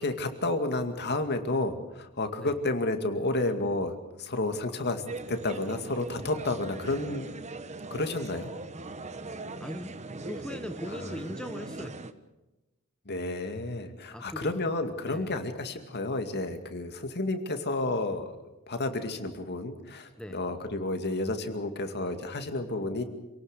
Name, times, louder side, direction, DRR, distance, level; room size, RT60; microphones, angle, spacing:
voice 1, 0.0-5.0 5.3-7.3 7.9-8.5 10.9-11.1 13.1-18.3 18.7-23.0, left 2 dB, 50° left, 7 dB, 2.3 m, -31 dB
sound 1, 5.1-12.1, right 2 dB, 30° right, 1.1 m, -40 dB
voice 2, 9.6-10.0 10.2-12.1 14.1-14.6 15.0-15.3 20.2-20.4, equal, 5° left, 7 dB, 0.9 m, -39 dB
27.5 x 18.0 x 6.7 m, 1.0 s
head